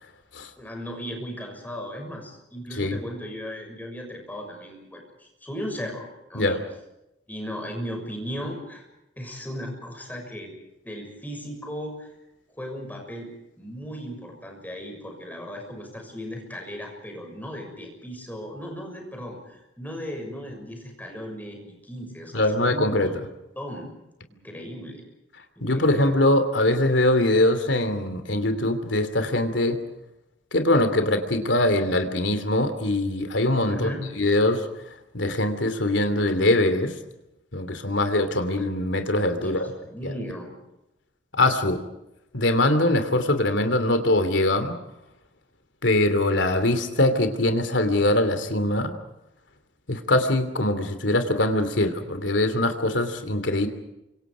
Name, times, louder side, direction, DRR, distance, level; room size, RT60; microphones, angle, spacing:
voice 1, 0.6-6.0 6.3-6.6 7.3-8.8 9.2-10.5 10.8-12.1 12.6-13.3 13.6-23.2 23.6-23.9 24.3-25.0 25.6-26.2 33.7-34.1 39.3-40.5, equal, 10° left, 1 dB, 6.6 m, -36 dB
voice 2, 22.3-23.1 25.6-29.8 30.5-33.9 34.2-34.7 35.1-36.9 37.5-39.7 40.0-40.1 41.3-41.8 42.3-44.8 45.8-49.0 49.9-53.7, left 1 dB, 80° left, 8 dB, 2.9 m, -22 dB
29.0 x 25.5 x 5.0 m, 0.90 s
head